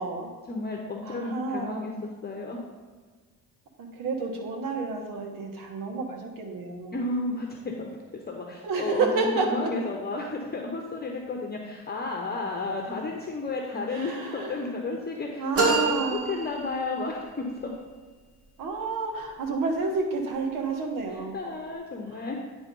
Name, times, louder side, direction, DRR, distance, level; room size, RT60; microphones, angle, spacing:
voice 1, 0.5-2.6 6.9-8.0 8.3-15.8 16.1-17.6 21.1-22.4, left 3 dB, 30° left, 1 dB, 0.9 m, -32 dB
voice 2, 1.0-1.8 4.0-6.9 8.6-9.5 13.9-14.5 15.4-16.3 18.6-21.4, right 4 dB, 80° right, 2 dB, 1.4 m, -30 dB
sound 1, 15.5-17.2, right 3 dB, 45° right, 1.7 m, -27 dB
9.7 x 3.5 x 5.3 m, 1.5 s
cardioid pair, 95°, 33 cm